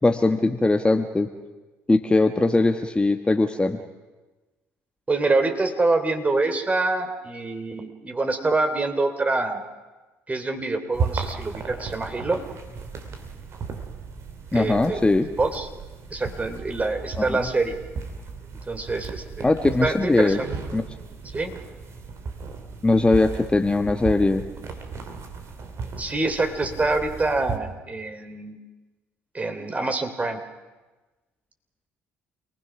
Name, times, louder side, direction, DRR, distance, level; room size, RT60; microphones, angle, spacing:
voice 1, 0.0-1.3 1.9-3.8 14.5-15.3 17.2-17.5 19.4-20.4 20.7-20.9 22.8-24.4, left 2 dB, 15° left, 6 dB, 1.4 m, -20 dB
voice 2, 5.1-9.6 10.3-12.4 14.5-15.0 15.4-15.7 16.1-17.8 18.7-19.5 19.8-20.5 21.3-21.6 26.0-28.5 29.3-30.4, right 3 dB, 25° right, 7 dB, 3.2 m, -25 dB
sound 1, 10.9-27.6, right 5 dB, 50° right, 3.0 m, -35 dB
28.0 x 20.0 x 6.1 m, 1.2 s
hypercardioid pair, 55°, 6 cm